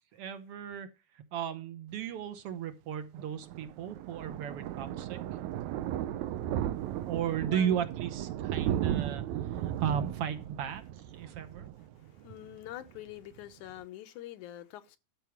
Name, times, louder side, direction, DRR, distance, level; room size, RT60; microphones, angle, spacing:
voice 1, 0.1-0.9 1.1-5.2 7.0-11.7, right 9 dB, 65° right, 1.7 m, -35 dB
Thunder, 3.2-12.6 12.9-13.1 13.4-13.5 13.7-13.8, right 11 dB, 80° right, 2.1 m, -35 dB
voice 2, 7.4-7.8 12.0-15.0, left 14 dB, 85° left, 2.3 m, -45 dB
13.0 x 4.6 x 7.2 m
omnidirectional pair, 3.4 m